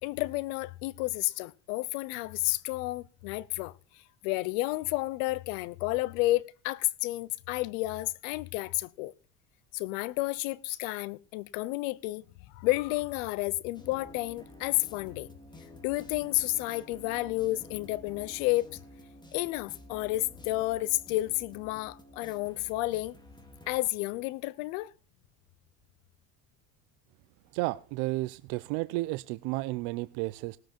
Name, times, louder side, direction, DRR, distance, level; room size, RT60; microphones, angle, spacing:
voice 1, 0.0-3.7 4.2-9.1 9.7-12.2 12.5-15.3 15.8-18.7 19.3-23.1 23.7-24.9, left 19 dB, 85° left, 0.8 m, -31 dB
sound 1, 13.7-23.7, left 1 dB, 10° left, 2.8 m, -51 dB
voice 2, 27.5-30.6, right 20 dB, 80° right, 0.6 m, -32 dB
19.0 x 7.8 x 4.4 m
supercardioid pair, 100°, 39 cm